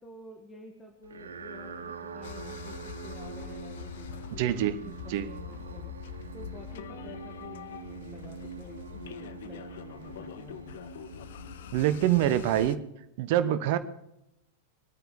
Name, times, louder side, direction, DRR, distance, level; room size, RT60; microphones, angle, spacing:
voice 1, 0.0-5.9 6.3-10.8, left 2 dB, 15° left, 2 dB, 2.1 m, -50 dB
sound 1, 1.0-12.5, right 5 dB, 65° right, 2.0 m, -44 dB
sound 2, 2.2-12.8, left 10 dB, 55° left, 0.6 m, -44 dB
voice 2, 4.4-4.8 5.1-5.3 11.7-12.8 13.2-13.8, right 12 dB, 50° right, 13 dB, 0.9 m, -25 dB
22.5 x 9.2 x 5.2 m, 0.85 s
figure-of-eight pair, 90°, 0 cm